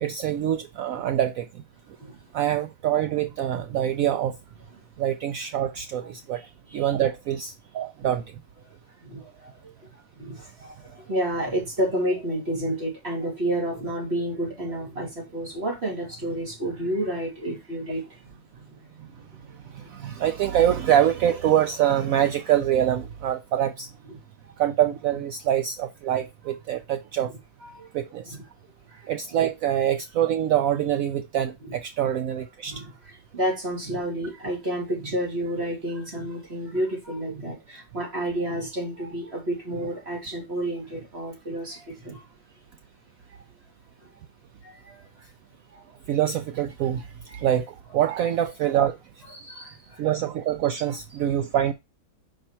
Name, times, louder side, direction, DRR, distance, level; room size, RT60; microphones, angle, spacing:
voice 1, 0.0-1.5 2.3-4.4 5.0-6.4 6.7-8.2 19.7-23.9 24.6-27.3 27.9-28.4 29.1-32.7 46.1-47.0 47.4-49.0 50.0-51.7, right 11 dB, 85° right, 0.7 m, -25 dB
voice 2, 6.0-6.9 8.0-8.2 9.0-9.6 9.9-18.2 18.9-20.2 24.1-24.2 26.1-26.2 27.6-27.9 28.3-28.4 28.9-29.4 32.7-42.2 43.3-43.4 44.6-45.3 45.7-45.8 47.3-47.5 49.3-50.1, right 1 dB, 35° right, 2.8 m, -31 dB
5.6 x 5.4 x 4.3 m
omnidirectional pair, 2.0 m